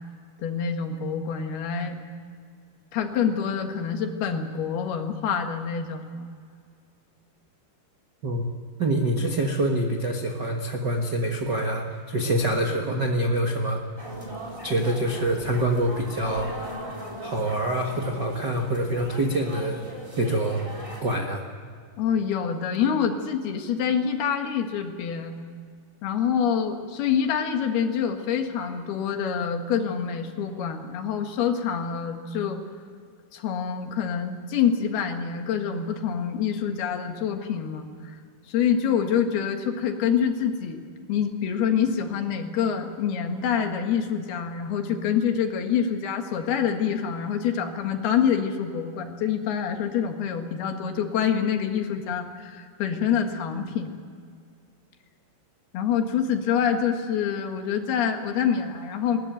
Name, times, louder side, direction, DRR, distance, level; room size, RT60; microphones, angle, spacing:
voice 1, 0.4-2.0 2.9-6.3 22.0-25.4 26.0-32.6 33.3-37.9 38.5-40.8 41.1-54.0 55.7-59.2, left 7 dB, 80° left, 5 dB, 3.7 m, -26 dB
voice 2, 8.8-13.8 14.6-16.5 17.2-19.8 20.2-20.6 21.0-21.4, right 1 dB, 55° right, 1 dB, 1.2 m, -25 dB
sound 1, 14.0-21.0, equal, 10° right, 2.7 m, -39 dB
21.0 x 19.5 x 9.3 m, 2.2 s
omnidirectional pair, 4.5 m